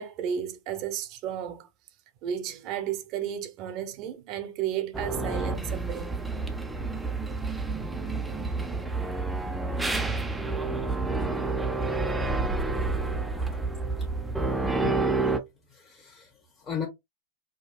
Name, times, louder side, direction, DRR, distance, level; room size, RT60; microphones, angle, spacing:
voice 1, 0.0-1.7 2.2-6.1, right 9 dB, 45° right, 0.8 m, -33 dB
sound 1, 4.9-15.4, right 3 dB, 5° right, 0.6 m, -29 dB
voice 2, 15.7-16.9, left 7 dB, 25° left, 1.2 m, -36 dB
5.2 x 2.3 x 2.3 m
hypercardioid pair, 110°, 0 cm